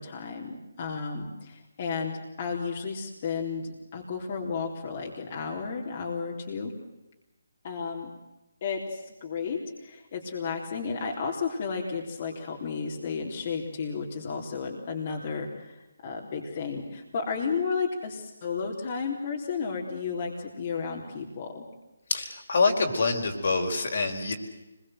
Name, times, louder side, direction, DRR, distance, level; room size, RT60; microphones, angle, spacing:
voice 1, 0.0-6.7 7.6-8.1 8.6-21.6, left 5 dB, 40° left, -1 dB, 3.7 m, -33 dB
voice 2, 22.1-24.3, left 3 dB, 60° left, 3 dB, 4.6 m, -26 dB
25.5 x 22.0 x 7.9 m, 1.0 s
figure-of-eight pair, 150°, 0 cm